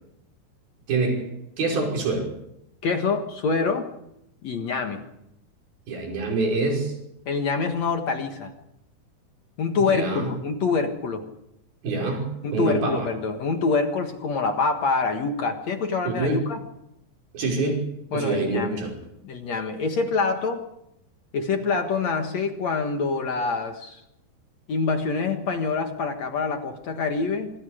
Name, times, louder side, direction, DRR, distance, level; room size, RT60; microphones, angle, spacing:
voice 1, 0.9-1.3 1.6-2.3 5.9-6.9 9.8-10.3 11.8-12.2 12.5-13.1 16.0-16.4 17.3-17.8 18.1-18.9, right 3 dB, 60° right, 0 dB, 7.4 m, -25 dB
voice 2, 2.8-3.9 4.4-5.0 7.3-8.5 9.6-11.3 12.4-16.6 18.1-18.8 19.2-20.6 21.3-24.0 24.7-27.5, left 4 dB, 55° left, 5 dB, 2.2 m, -26 dB
26.0 x 24.0 x 5.1 m, 0.81 s
omnidirectional pair, 4.8 m